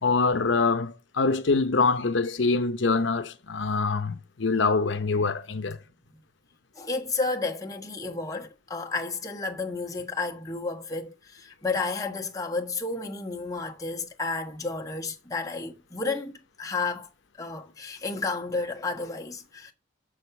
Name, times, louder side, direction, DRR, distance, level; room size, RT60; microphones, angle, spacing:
voice 1, 0.0-5.8, left 4 dB, 70° left, 0.7 m, -24 dB
voice 2, 6.7-17.1 17.4-19.7, left 3 dB, 15° left, 1.3 m, -32 dB
7.1 x 6.5 x 6.8 m
head